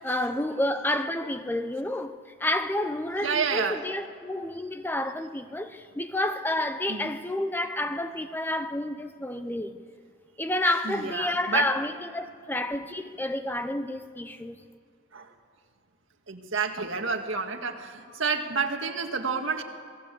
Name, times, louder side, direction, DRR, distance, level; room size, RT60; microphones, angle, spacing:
voice 1, 0.0-9.8 10.4-14.6, left 1 dB, 10° left, 0.6 m, -30 dB
voice 2, 3.2-3.8 6.9-7.1 10.8-11.7 15.1-15.3 16.3-19.6, right 5 dB, 70° right, 1.9 m, -29 dB
27.0 x 18.5 x 8.4 m
head